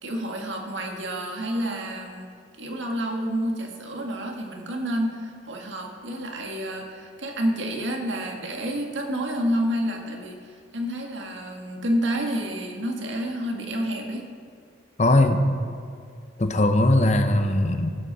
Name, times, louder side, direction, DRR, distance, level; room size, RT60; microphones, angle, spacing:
voice 1, 0.0-10.4 10.7-14.2, equal, 80° right, 1 dB, 1.8 m, -29 dB
voice 2, 15.0-15.4 16.4-17.9, left 1 dB, 35° left, 7 dB, 0.8 m, -20 dB
15.5 x 8.3 x 5.5 m, 2.3 s
head